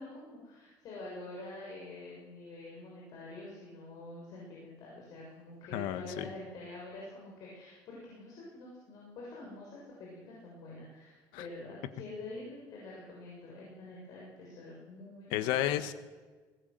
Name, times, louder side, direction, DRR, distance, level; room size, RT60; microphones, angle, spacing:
voice 1, 0.0-15.7, left 2 dB, 55° left, -4 dB, 7.0 m, -47 dB
voice 2, 5.7-6.3 11.3-11.5 15.3-15.9, left 12 dB, 90° left, 11 dB, 1.5 m, -32 dB
21.5 x 19.5 x 7.8 m, 1.4 s
cardioid pair, 155°, 8 cm